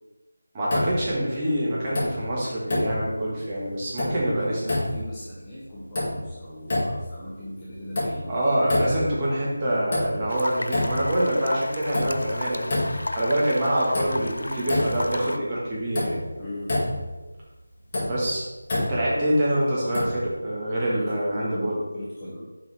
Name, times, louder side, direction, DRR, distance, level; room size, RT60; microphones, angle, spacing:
voice 1, 0.5-4.6 8.2-16.2 18.0-18.4 18.8-21.8, right 1 dB, 20° right, -7 dB, 1.5 m, -25 dB
sound 1, 0.7-1.4 1.8-2.4 2.7-3.3 3.7-4.3 4.6-5.3 5.7-6.4 6.7-7.2 7.7-8.4 8.7-9.3 9.7-10.4 10.6-11.3 11.6-13.2 13.6-13.7 13.9-15.2 15.5-15.6 15.9-17.2 17.7-19.2 19.9-20.3, left 1 dB, 35° left, 1.9 m, -28 dB
voice 2, 4.2-8.4 16.4-16.8 20.9-22.5, left 1 dB, 15° left, -9 dB, 1.0 m, -37 dB
sound 2, 10.3-15.4, left 1 dB, 85° left, 0.3 m, -34 dB
6.5 x 4.8 x 3.4 m, 1.1 s
figure-of-eight pair, 170°, 0 cm